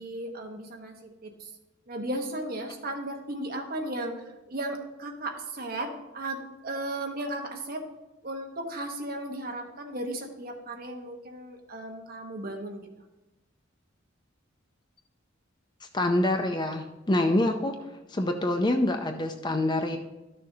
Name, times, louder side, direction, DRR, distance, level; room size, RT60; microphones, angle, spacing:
voice 1, 0.0-1.5 1.9-4.1 4.5-7.8 8.2-12.9, right 1 dB, 50° right, 3 dB, 1.1 m, -35 dB
voice 2, 15.8-17.7 18.1-20.0, left 1 dB, 20° left, 5 dB, 0.5 m, -26 dB
13.0 x 6.5 x 2.7 m, 1.0 s
head